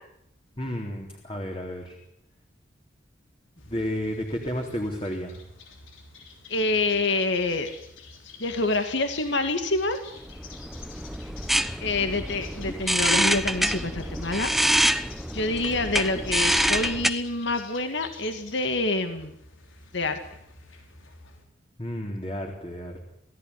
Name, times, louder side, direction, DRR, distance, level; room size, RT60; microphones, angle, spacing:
voice 1, 0.6-2.0 3.7-5.4 21.8-23.1, equal, 25° left, 1 dB, 3.7 m, -32 dB
sound 1, 3.6-21.4, left 4 dB, 85° left, 6.6 m, -48 dB
voice 2, 6.5-7.7 8.4-10.0 11.8-14.5 15.3-19.3 19.9-20.2, left 2 dB, 65° left, 7 dB, 2.3 m, -26 dB
sound 2, 10.3-17.1, equal, ahead, 1.0 m, -26 dB
28.5 x 17.5 x 9.9 m, 0.79 s
head